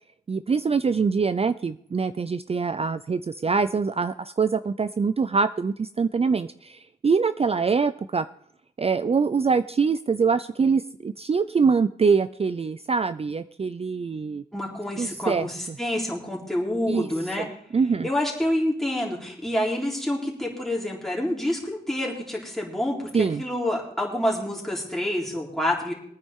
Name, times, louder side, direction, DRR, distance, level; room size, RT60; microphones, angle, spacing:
voice 1, 0.3-8.3 8.8-14.4 15.0-15.8 16.9-17.1 17.4-17.5 17.7-18.1 23.1-23.4, right 5 dB, 35° right, 12 dB, 0.4 m, -24 dB
voice 2, 14.5-17.5 18.0-25.9, left 1 dB, ahead, -3 dB, 3.8 m, -27 dB
22.0 x 9.6 x 3.7 m, 0.66 s
wide cardioid pair, 115°, 17 cm